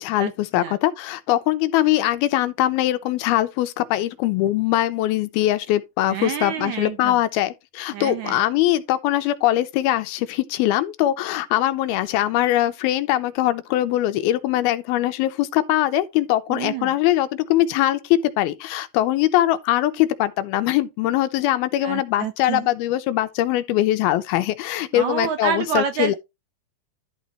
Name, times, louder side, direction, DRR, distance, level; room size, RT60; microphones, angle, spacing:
voice 1, 0.0-26.2, left 14 dB, 85° left, 2.7 m, -22 dB
voice 2, 6.1-7.2 7.9-8.4 16.5-16.9 21.8-22.7 24.9-26.1, right 8 dB, 85° right, 1.6 m, -28 dB
11.5 x 4.0 x 4.4 m
omnidirectional pair, 4.3 m